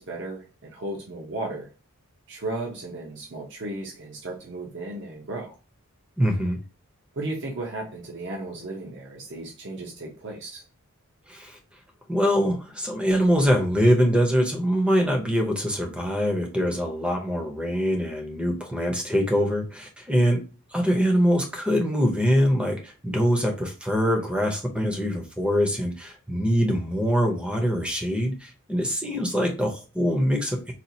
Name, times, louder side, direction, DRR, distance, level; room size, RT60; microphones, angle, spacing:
voice 1, 0.0-1.7 2.3-5.6 7.1-10.6, right 2 dB, 55° right, -1 dB, 0.7 m, -35 dB
voice 2, 6.2-6.6 11.3-11.6 12.1-20.4 20.7-30.7, equal, 5° right, 2 dB, 0.6 m, -23 dB
4.1 x 2.4 x 2.7 m, 0.32 s
head